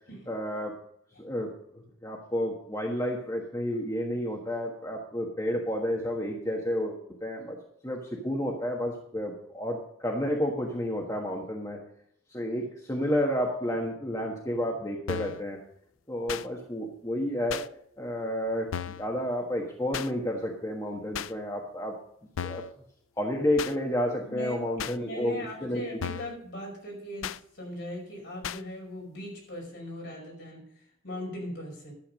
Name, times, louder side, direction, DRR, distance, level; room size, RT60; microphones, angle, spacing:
voice 1, 0.3-0.7 1.2-1.5 2.0-7.6 7.8-11.8 12.3-15.6 16.1-17.6 18.0-18.7 19.0-21.9 22.4-22.6 23.2-25.8, equal, 15° left, 0 dB, 1.3 m, -30 dB
sound 1, 15.1-15.4 16.3-16.5 17.5-17.7 18.7-19.1 19.9-20.1 21.1-21.3 22.4-22.7 23.6-23.7 24.8-25.0 26.0-26.4 27.2-27.4 28.4-28.6, left 8 dB, 75° left, 0.4 m, -35 dB
voice 2, 24.2-31.9, equal, 55° left, 0 dB, 5.3 m, -40 dB
12.0 x 8.2 x 5.2 m, 0.69 s
head